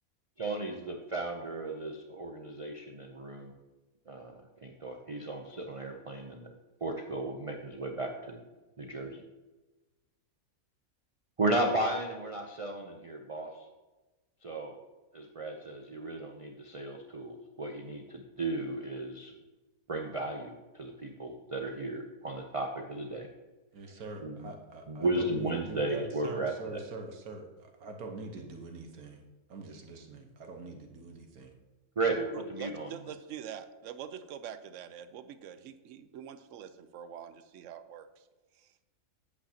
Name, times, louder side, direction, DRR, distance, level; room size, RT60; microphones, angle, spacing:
voice 1, 0.4-3.5 4.1-6.5 6.8-8.4 8.8-9.2 11.4-13.5 14.4-14.7 15.1-19.3 19.9-23.3 24.2-24.5 24.9-26.8 32.0-32.9, right 2 dB, 45° right, 2 dB, 0.4 m, -35 dB
voice 2, 23.7-29.2 29.5-31.5, right 3 dB, 85° right, 3 dB, 1.6 m, -43 dB
voice 3, 32.3-38.2 38.5-38.7, right 9 dB, 70° right, 11 dB, 0.9 m, -45 dB
8.4 x 8.4 x 2.8 m, 1.2 s
omnidirectional pair, 1.5 m